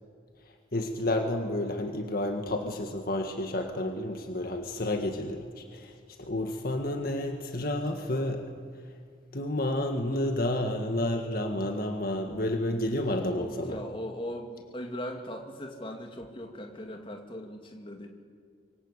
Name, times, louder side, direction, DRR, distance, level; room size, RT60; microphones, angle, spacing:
voice 1, 0.7-8.4 9.3-13.8, left 1 dB, 55° left, 4 dB, 1.8 m, -30 dB
voice 2, 13.3-18.1, equal, 30° left, 3 dB, 2.5 m, -39 dB
26.0 x 22.5 x 8.3 m, 2.1 s
head